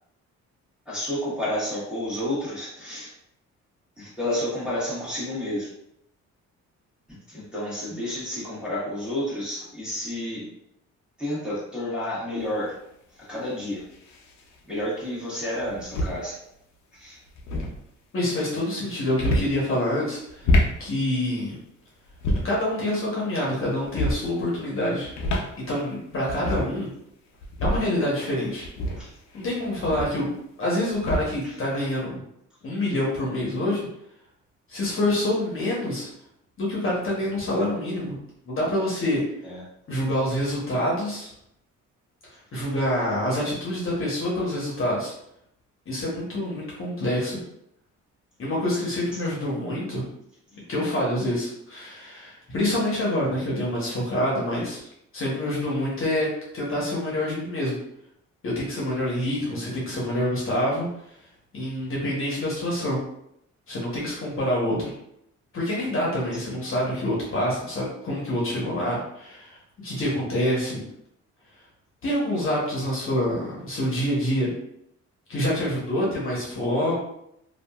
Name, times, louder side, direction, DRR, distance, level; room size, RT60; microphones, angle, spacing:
voice 1, 0.9-3.1 4.0-5.7 7.1-10.5 11.2-12.8 13.2-13.9 14.6-16.4 16.9-17.2 29.0-29.1 31.4-31.5 39.4-39.6 66.3-66.5, left 1 dB, 5° right, -9 dB, 1.4 m, -30 dB
sound 1, 12.4-12.5 13.9-14.4 15.6-16.2 17.3-17.8 19.1-19.6 20.3-20.8 22.1-22.6 23.8-24.3 25.0-25.5 25.9-26.0 26.2-26.8 27.4-27.9 28.6-30.3 30.9-31.4, left 1 dB, 65° left, 0.6 m, -26 dB
voice 2, 18.1-21.6 22.4-25.1 25.6-26.9 27.6-28.7 29.3-30.3 30.6-32.2 32.6-33.9 34.7-36.1 36.6-38.2 38.5-39.2 39.9-41.3 42.5-45.1 45.9-47.4 48.4-50.1 50.7-57.8 58.4-60.9 61.5-63.0 63.7-64.9 65.5-70.9 72.0-74.5 75.3-77.0, left 1 dB, 45° left, -5 dB, 0.9 m, -26 dB
2.8 x 2.4 x 2.3 m, 0.76 s
cardioid pair, 90°, 30 cm